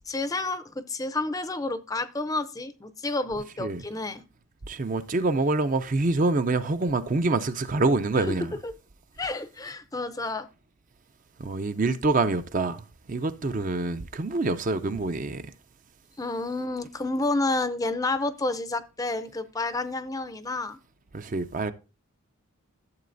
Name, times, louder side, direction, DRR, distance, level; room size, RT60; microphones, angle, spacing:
voice 1, 0.1-4.2 8.6-8.7 9.2-10.5 16.2-20.8, left 2 dB, 15° left, 0.5 m, -30 dB
voice 2, 4.7-8.6 11.4-15.4 21.1-21.7, right 3 dB, 35° right, 0.5 m, -26 dB
12.5 x 7.6 x 2.6 m
head